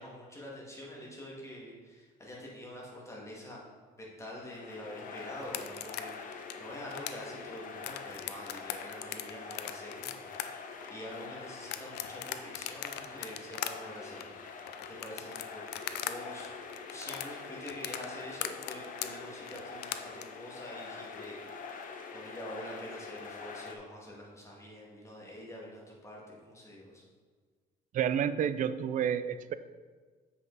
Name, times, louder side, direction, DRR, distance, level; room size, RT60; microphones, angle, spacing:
voice 1, 0.0-3.6 4.0-14.4 14.9-16.6 16.9-27.0, left 1 dB, 15° left, -4 dB, 2.1 m, -46 dB
sound 1, 4.2-23.8, left 5 dB, 55° left, 0.8 m, -45 dB
sound 2, 5.4-16.1 16.4-20.2, left 12 dB, 75° left, 0.5 m, -39 dB
voice 2, 27.9-29.5, right 8 dB, 50° right, 13 dB, 0.4 m, -30 dB
7.4 x 5.6 x 4.0 m, 1.5 s
cardioid pair, 110°, 17 cm